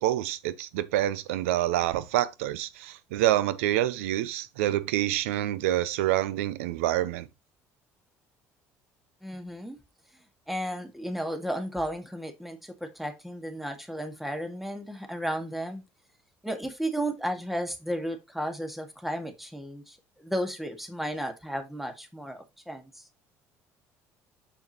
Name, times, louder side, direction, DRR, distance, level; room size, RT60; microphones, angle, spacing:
voice 1, 0.0-7.3, right 13 dB, 90° right, 0.6 m, -27 dB
voice 2, 9.2-9.8 10.5-15.8 16.4-23.0, equal, ahead, 1.8 m, -34 dB
7.1 x 6.9 x 3.0 m
supercardioid pair, 75°, 7 cm